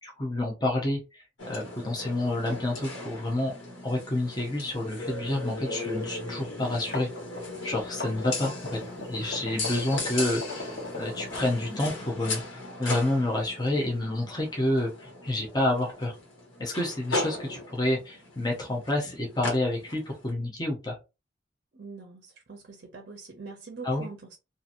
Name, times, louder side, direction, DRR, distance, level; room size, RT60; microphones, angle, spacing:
voice 1, 0.0-3.5 3.8-7.1 7.6-16.2 16.6-21.0 23.8-24.1, left 1 dB, 20° left, 0.6 m, -29 dB
sound 1, 1.4-20.3, left 2 dB, 80° left, 1.4 m, -37 dB
sound 2, 6.7-11.9, left 2 dB, 55° left, 1.0 m, -38 dB
voice 2, 21.7-24.4, right 4 dB, 50° right, 0.5 m, -43 dB
2.8 x 2.5 x 2.5 m
head